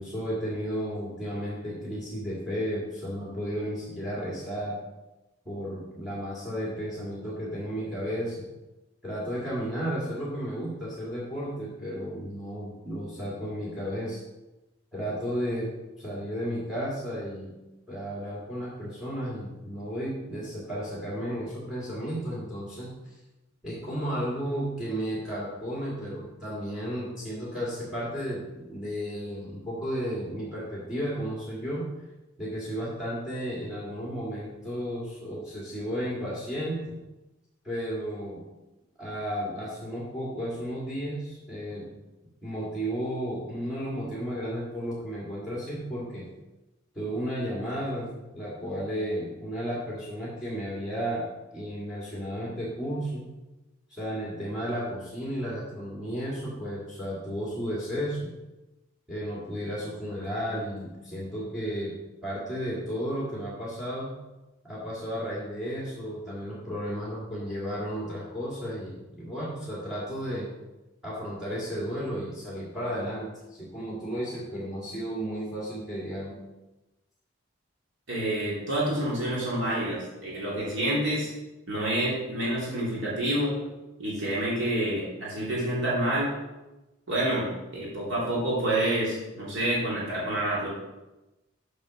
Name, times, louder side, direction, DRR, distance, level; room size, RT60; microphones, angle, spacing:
voice 1, 0.0-4.8 5.5-8.5 9.0-14.2 14.9-15.7 16.0-17.5 17.9-22.9 23.6-31.9 32.4-37.0 37.6-38.4 39.0-41.9 42.4-46.3 46.9-51.2 51.5-53.3 53.9-58.3 59.1-61.9 62.2-64.2 64.6-70.5 71.0-76.4, equal, ahead, -6 dB, 2.2 m, -33 dB
voice 2, 78.1-81.3 81.7-83.7 84.0-86.3 87.1-90.7, right 1 dB, 65° right, -6 dB, 2.8 m, -28 dB
7.3 x 5.4 x 6.0 m, 1.0 s
head